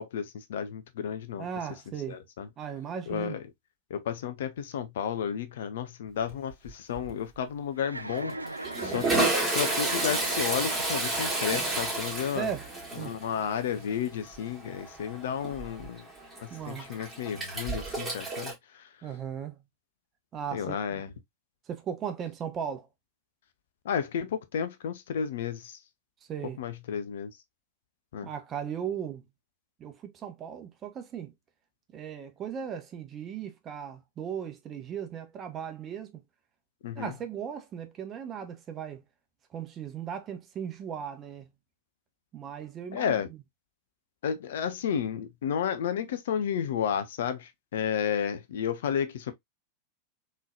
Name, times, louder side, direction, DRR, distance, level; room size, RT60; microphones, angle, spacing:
voice 1, 0.0-1.5 2.1-2.5 3.1-3.4 3.9-12.5 13.0-16.1 16.4-18.9 20.5-21.1 23.8-25.8 26.6-27.3 28.1-28.3 36.8-37.1 42.9-43.3 44.2-49.3, left 8 dB, 60° left, 0.6 m, -32 dB
voice 2, 1.4-2.2 2.6-3.4 12.3-12.7 13.0-13.2 16.5-17.0 19.0-19.6 20.3-21.0 21.7-22.9 26.3-26.6 28.2-29.2 29.8-31.3 31.9-36.2 37.0-39.0 39.5-41.5 42.3-43.4, right 8 dB, 30° right, 0.9 m, -37 dB
Toilet flush, 6.3-6.7 7.0-7.1 8.1-18.5, right 2 dB, 10° right, 2.2 m, -31 dB
Chuckle chortle, 7.8-11.9, right 2 dB, 85° right, 0.4 m, -40 dB
3.8 x 3.2 x 2.4 m
figure-of-eight pair, 90°, 0 cm